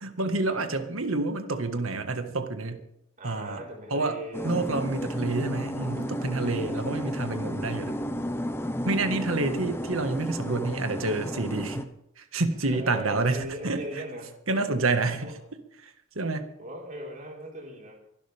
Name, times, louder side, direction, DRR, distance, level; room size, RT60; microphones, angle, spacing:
voice 1, 0.0-2.8 3.2-3.6 3.9-4.2 4.4-8.0 8.8-11.9 12.2-13.8 14.5-15.3 15.8-16.5, right 3 dB, 85° right, 7 dB, 1.8 m, -28 dB
voice 2, 3.2-4.8 6.4-7.1 7.8-8.1 9.1-9.6 12.6-14.3 15.2-15.3 16.6-18.0, right 1 dB, 40° right, -1 dB, 4.7 m, -40 dB
sound 1, 4.3-11.9, equal, 10° left, 1.0 m, -33 dB
24.5 x 11.5 x 3.6 m, 0.77 s
head